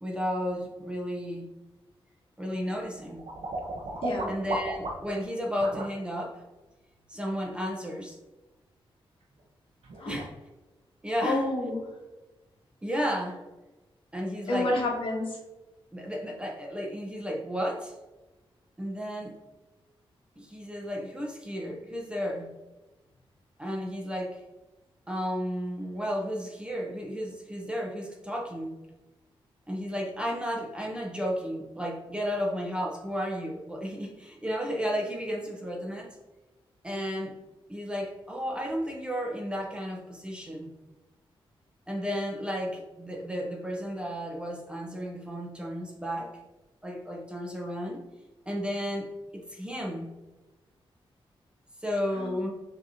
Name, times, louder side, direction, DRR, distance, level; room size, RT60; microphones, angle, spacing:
voice 1, 0.0-1.5 2.4-3.2 4.3-6.4 7.1-8.2 10.1-10.3 11.0-11.4 12.8-13.4 14.1-14.7 15.9-17.9 18.8-19.4 20.4-22.5 23.6-24.4 25.1-28.8 29.7-36.1 36.8-37.3 37.7-40.7 41.9-46.3 46.8-48.0 48.5-50.1 51.8-52.5, equal, 10° right, -1 dB, 0.6 m, -33 dB
sound 1, 2.5-5.2 5.6-5.9 9.4-9.5 9.8-10.3, right 2 dB, 85° right, 0.9 m, -35 dB
voice 2, 11.2-11.8 14.5-15.4 52.2-52.3, left 2 dB, 70° left, -1 dB, 1.1 m, -29 dB
6.1 x 2.9 x 2.7 m, 1.1 s
wide cardioid pair, 145°, 9 cm